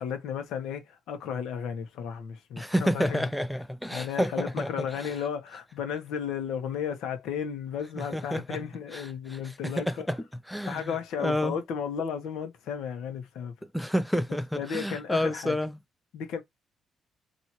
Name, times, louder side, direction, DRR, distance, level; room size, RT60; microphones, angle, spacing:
voice 1, 0.0-3.2 3.9-10.1 10.7-13.5 14.6-15.6 16.1-16.4, left 7 dB, 85° left, 1.2 m, -34 dB
voice 2, 2.6-4.9 8.0-8.6 8.9-9.0 9.3-9.4 9.6-10.2 10.5-11.6 13.7-15.7, equal, ahead, 0.4 m, -29 dB
2.9 x 2.7 x 4.4 m
cardioid pair, 90°, 0 cm